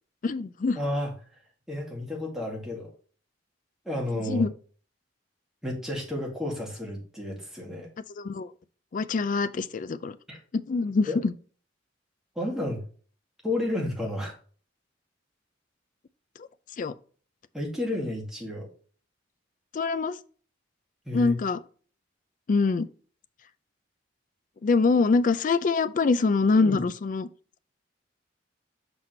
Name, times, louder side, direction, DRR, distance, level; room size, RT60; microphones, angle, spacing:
voice 1, 0.2-0.8 4.1-4.5 8.2-8.5 8.9-10.2 10.5-11.3 16.8-16.9 19.7-20.2 21.1-21.6 22.5-22.9 24.6-27.3, left 4 dB, 45° left, 0.4 m, -24 dB
voice 2, 0.8-1.1 1.7-2.9 3.9-4.4 5.6-7.9 10.3-10.4 11.1-11.2 12.4-12.8 13.4-14.3 17.5-18.7 21.1-21.4 26.6-26.8, left 1 dB, ahead, 2.1 m, -31 dB
6.1 x 5.8 x 3.2 m
head